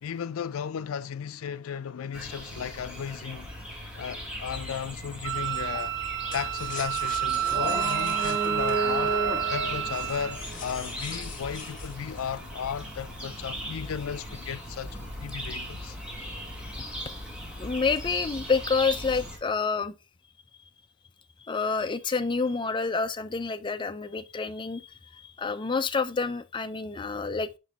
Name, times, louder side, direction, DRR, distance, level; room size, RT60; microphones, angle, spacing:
voice 1, 0.0-3.5 4.0-6.0 6.3-9.2 9.5-16.0, left 7 dB, 85° left, 0.4 m, -35 dB
sound 1, 2.1-19.4, right 1 dB, 5° right, 1.7 m, -36 dB
Wind instrument woodwind instrument, 5.2-10.4, right 11 dB, 55° right, 0.4 m, -29 dB
sound 2, 6.3-13.2 13.8-16.2 16.6-16.7 17.0-17.3 17.8-18.5 18.8-19.3, left 6 dB, 40° left, 0.9 m, -44 dB
voice 2, 17.4-19.9 21.4-24.8 25.1-27.5, left 4 dB, 25° left, 0.4 m, -28 dB
6.1 x 5.4 x 2.9 m
head